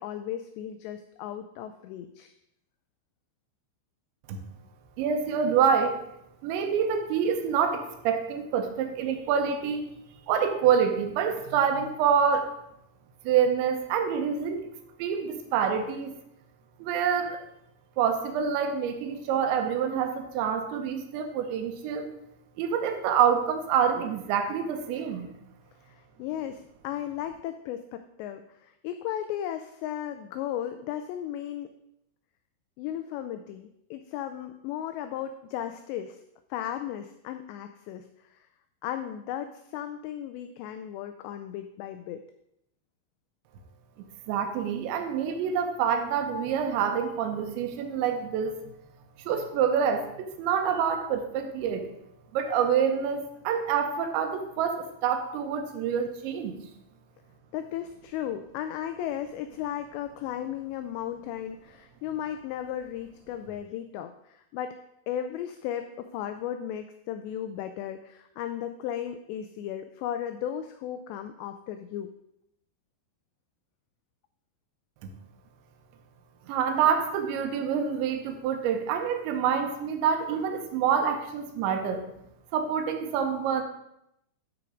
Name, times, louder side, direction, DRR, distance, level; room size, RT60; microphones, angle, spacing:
voice 1, 0.0-2.3 25.9-31.7 32.8-36.2 36.5-38.1 38.8-42.2 57.5-64.8 65.1-72.1, left 10 dB, 85° left, 9 dB, 2.5 m, -35 dB
voice 2, 5.0-6.0 6.4-9.9 10.3-12.5 13.3-14.6 15.0-16.1 16.8-17.4 18.0-22.1 22.6-25.3 44.3-48.6 49.3-51.9 52.3-56.5 76.5-82.0 82.5-83.6, right 7 dB, 75° right, 6 dB, 3.1 m, -26 dB
13.0 x 4.5 x 4.9 m, 0.80 s
omnidirectional pair, 5.5 m